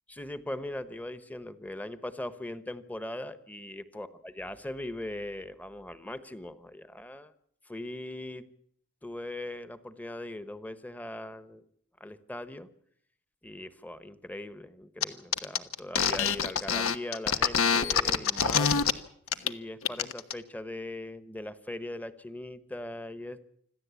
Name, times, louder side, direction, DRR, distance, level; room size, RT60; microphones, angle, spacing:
voice 1, 0.1-7.3 7.7-8.5 9.0-11.6 12.0-12.7 13.4-18.8 19.4-23.5, left 1 dB, 10° left, 12 dB, 1.1 m, -40 dB
sound 1, 15.0-15.1 15.3-18.9 19.3-19.5 19.8-20.3, left 7 dB, 80° left, 1.2 m, -25 dB
26.0 x 14.5 x 8.3 m, 0.67 s
head